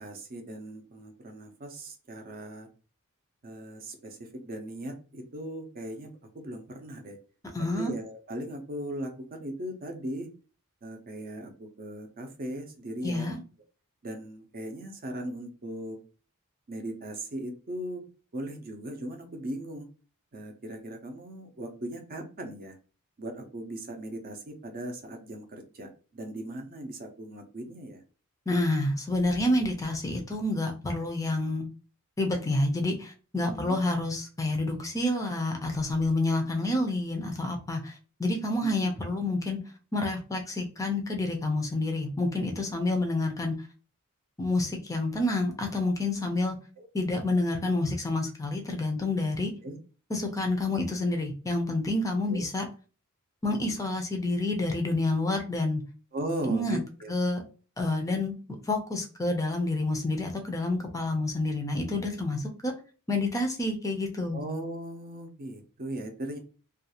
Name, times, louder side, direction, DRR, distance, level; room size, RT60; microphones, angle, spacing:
voice 1, 0.0-2.7 3.4-7.2 7.6-10.3 10.8-13.4 14.0-16.0 16.7-18.0 18.3-19.9 20.3-22.8 23.2-28.0 33.5-33.8 38.6-38.9 46.8-46.9 49.6-49.8 52.3-52.5 56.1-57.1 64.3-66.4, right 1 dB, 40° right, 4 dB, 0.5 m, -38 dB
voice 2, 7.5-7.9 13.0-13.4 28.5-31.7 32.2-39.6 39.9-43.5 44.4-46.6 46.9-49.5 50.1-52.7 53.4-55.8 56.5-56.8 57.1-57.4 57.8-58.3 58.7-62.7 63.1-64.4, left 2 dB, 15° left, 3 dB, 0.4 m, -28 dB
2.4 x 2.3 x 2.8 m, 0.36 s
head